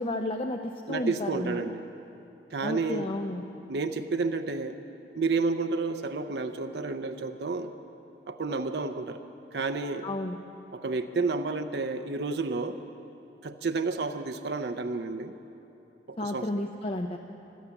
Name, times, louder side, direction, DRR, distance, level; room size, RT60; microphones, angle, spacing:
voice 1, 0.0-1.6 2.6-3.4 10.0-10.4 16.2-17.2, left 1 dB, 35° left, 4 dB, 0.5 m, -32 dB
voice 2, 0.9-1.8 2.5-3.1 3.7-4.8 5.1-7.7 8.3-9.2 9.5-10.1 10.7-12.8 13.4-15.3 16.1-16.5, right 3 dB, 70° right, 7 dB, 0.6 m, -30 dB
16.5 x 12.0 x 7.1 m, 3.0 s
head